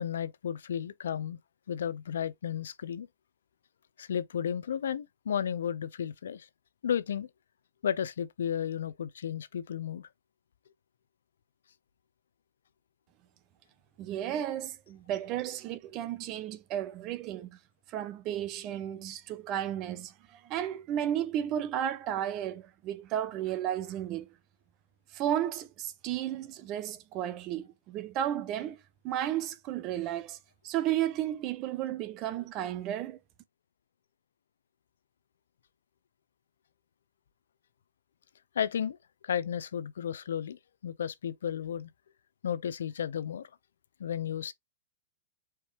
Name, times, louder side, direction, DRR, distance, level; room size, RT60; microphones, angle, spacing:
voice 1, 0.0-1.4 1.7-3.1 4.0-6.5 6.8-7.3 7.8-10.1 38.5-39.0 39.2-41.9 42.4-43.5 44.0-44.5, left 8 dB, 85° left, 0.5 m, -33 dB
voice 2, 14.0-17.6 17.9-24.3 25.1-28.8 29.0-30.4 30.6-33.2, right 11 dB, 35° right, 0.7 m, -33 dB
4.5 x 3.1 x 3.4 m
hypercardioid pair, 135°, 0 cm